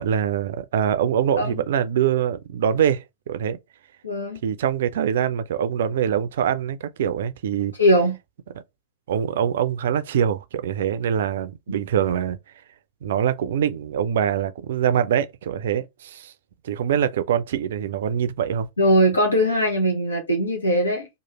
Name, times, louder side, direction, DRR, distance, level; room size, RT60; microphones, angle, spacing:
voice 1, 0.0-3.6 4.4-7.7 9.1-12.4 13.0-16.3 16.6-18.7, right 9 dB, 60° right, 0.4 m, -24 dB
voice 2, 4.0-4.4 7.8-8.2 18.8-21.1, equal, 80° left, 0.7 m, -20 dB
3.1 x 2.3 x 2.9 m
figure-of-eight pair, 90°, 0 cm